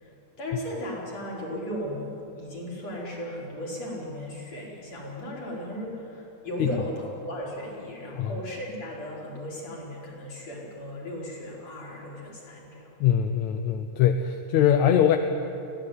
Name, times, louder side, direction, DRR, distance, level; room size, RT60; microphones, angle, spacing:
voice 1, 0.4-12.9, equal, 55° left, -4 dB, 6.2 m, -36 dB
voice 2, 13.0-15.2, left 9 dB, 70° left, 6 dB, 2.1 m, -22 dB
24.5 x 17.0 x 9.6 m, 2.7 s
omnidirectional pair, 3.6 m